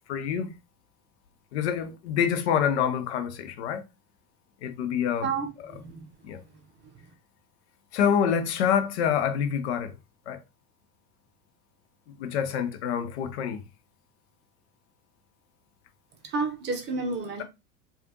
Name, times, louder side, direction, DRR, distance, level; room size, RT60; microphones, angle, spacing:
voice 1, 0.1-0.5 1.5-3.8 4.6-5.3 5.6-5.7 6.2-6.4 7.9-10.0 10.3-10.4 12.1-13.6, left 8 dB, 50° left, 0.6 m, -27 dB
voice 2, 5.2-6.1 16.2-17.4, right 4 dB, 25° right, 0.9 m, -31 dB
4.8 x 2.5 x 2.9 m
figure-of-eight pair, 90°, 45 cm